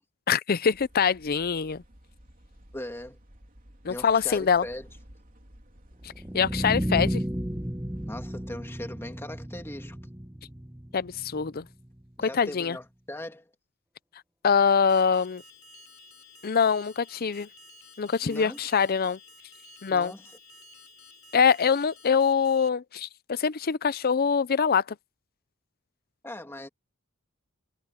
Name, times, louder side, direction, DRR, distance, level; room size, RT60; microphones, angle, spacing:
voice 1, 0.3-1.8 3.8-4.6 6.3-7.2 10.9-11.6 12.2-12.8 14.4-15.4 16.4-17.5 18.0-19.2 19.8-20.1 21.3-24.8, left 6 dB, 45° left, 0.5 m, -24 dB
sound 1, 0.7-8.6, equal, 40° right, 3.3 m, -54 dB
voice 2, 2.7-3.2 3.9-4.9 8.1-10.0 12.2-13.5 18.2-18.6 19.9-20.2 26.2-26.7, left 1 dB, 10° left, 2.4 m, -39 dB
sound 2, 6.0-12.1, equal, 10° right, 1.1 m, -33 dB
Alarm, 14.9-22.7, left 2 dB, 70° left, 5.7 m, -52 dB
head